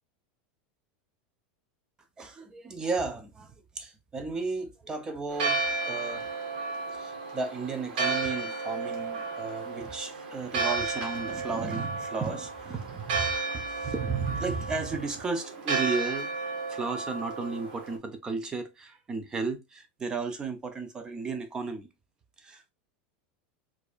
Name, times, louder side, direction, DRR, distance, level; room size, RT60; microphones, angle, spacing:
voice 1, 2.2-6.3 6.9-16.3 16.7-21.9 22.4-22.7, right 4 dB, 15° right, 0.5 m, -34 dB
Church bell, 5.3-18.0, right 3 dB, 80° right, 1.2 m, -33 dB
4.5 x 2.5 x 2.3 m
supercardioid pair, 160°, 5 cm